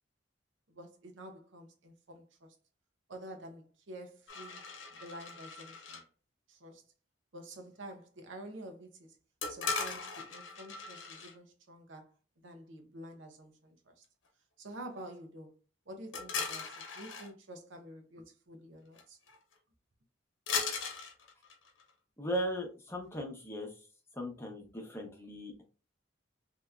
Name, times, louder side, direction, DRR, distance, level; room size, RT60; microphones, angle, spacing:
voice 1, 0.7-2.5 3.1-6.0 6.5-6.8 7.3-9.2 9.5-14.0 14.6-15.5 15.9-19.2, right 1 dB, 80° right, 0.8 m, -49 dB
sound 1, 4.3-6.0 9.4-11.4 16.1-17.3 19.0-19.1 19.3-19.5 20.5-21.9, left 5 dB, 85° left, 0.9 m, -38 dB
voice 2, 22.2-23.8 24.1-25.6, equal, 15° left, 0.7 m, -38 dB
3.4 x 2.9 x 2.4 m
head